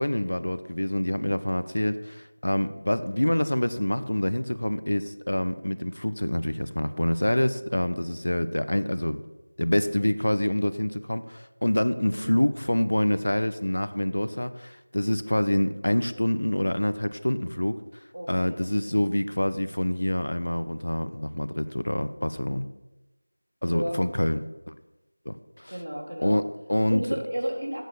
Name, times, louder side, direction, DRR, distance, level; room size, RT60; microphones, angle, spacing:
voice 1, 0.0-9.2 9.6-17.8 18.3-22.7 23.6-24.4 24.7-24.8 25.3-25.8 26.2-27.0, left 1 dB, 75° left, 13 dB, 0.8 m, -26 dB
voice 2, 12.0-12.3 18.1-18.9 23.6-24.0 25.7-26.4 26.9-27.8, equal, 75° right, 0 dB, 3.0 m, -33 dB
8.3 x 7.9 x 7.0 m, 1.1 s
figure-of-eight pair, 180°, 0 cm